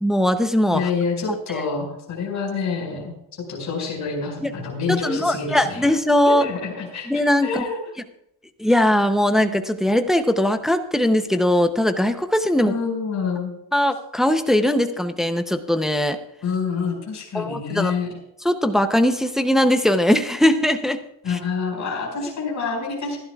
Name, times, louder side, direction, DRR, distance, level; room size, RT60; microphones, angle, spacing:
voice 1, 0.0-0.8 4.4-4.5 4.9-6.5 7.1-7.6 8.6-12.7 13.7-16.2 17.3-18.0 18.4-21.0 21.3-21.4, left 1 dB, ahead, 7 dB, 0.6 m, -20 dB
voice 2, 0.7-5.9 6.3-7.1 7.4-7.9 12.6-13.5 16.4-18.1 21.2-23.2, left 5 dB, 35° left, -1 dB, 5.3 m, -27 dB
26.5 x 11.5 x 2.3 m, 0.81 s
cardioid pair, 160°, 47 cm